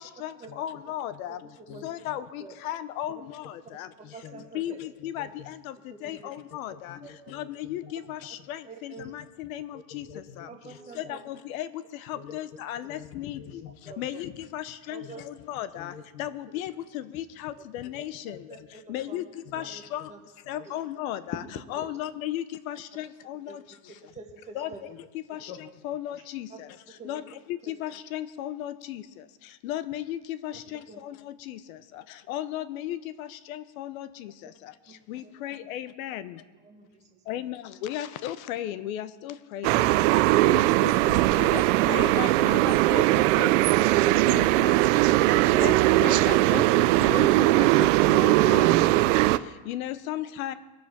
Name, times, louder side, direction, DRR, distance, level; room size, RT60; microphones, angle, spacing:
voice 1, 0.0-1.4 1.8-3.9 4.5-5.7 6.0-7.0 7.3-10.1 10.4-10.5 11.0-11.7 12.1-13.4 14.0-15.9 16.2-18.4 18.9-19.2 19.5-20.1 20.5-21.4 21.7-23.6 24.5-24.7 25.3-25.5 25.8-26.5 27.1-27.2 27.7-29.0 29.6-31.1 31.5-31.6 32.3-34.3 35.1-36.3 37.3-39.7 40.5-43.9 44.3-44.8 45.5-45.7 46.0-46.6 47.0-47.7 48.1-48.7 49.7-50.5, left 12 dB, 70° left, 13 dB, 0.8 m, -35 dB
voice 2, 1.1-2.2 4.0-4.5 5.0-5.5 6.7-7.9 9.9-10.8 12.1-12.4 12.9-13.9 14.2-14.4 15.0-15.3 15.8-16.3 17.9-18.0 18.3-19.0 19.5-19.7 20.0-20.1 20.4-20.7 24.9-25.0 25.5-25.7 45.4-45.6 49.0-49.6, left 8 dB, 30° left, 6 dB, 0.8 m, -47 dB
voice 3, 1.7-2.1 2.4-2.5 3.1-3.2 3.6-3.8 4.1-4.8 6.0-6.3 7.0-7.1 8.6-9.1 10.5-11.2 13.8-14.3 14.9-15.2 16.5-16.6 17.6-17.7 18.3-19.2 19.5-19.8 20.1-20.2 20.6-20.7 23.5-23.6 23.9-24.8 25.3-25.4 26.5-26.6 26.9-27.3 27.6-27.7 30.9-31.0 34.9-35.0 35.2-35.4 36.5-37.4, right 4 dB, 15° right, 2 dB, 1.4 m, -47 dB
sound 1, 39.6-49.4, right 17 dB, 60° right, 0.5 m, -20 dB
22.0 x 7.4 x 5.8 m, 1.2 s
supercardioid pair, 175°, 43 cm